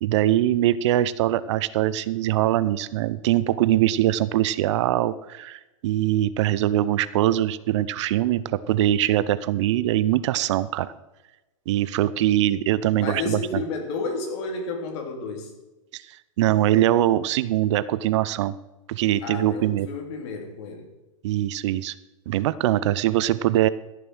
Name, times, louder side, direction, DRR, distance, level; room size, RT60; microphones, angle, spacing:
voice 1, 0.0-10.9 11.7-13.6 15.9-16.0 16.4-18.5 18.9-19.9 21.2-21.9 22.3-23.7, right 13 dB, 55° right, 17 dB, 0.6 m, -22 dB
voice 2, 13.0-15.5 19.2-20.9, left 4 dB, 50° left, 3 dB, 3.2 m, -31 dB
14.5 x 7.0 x 6.2 m, 1.0 s
hypercardioid pair, 135°, 18 cm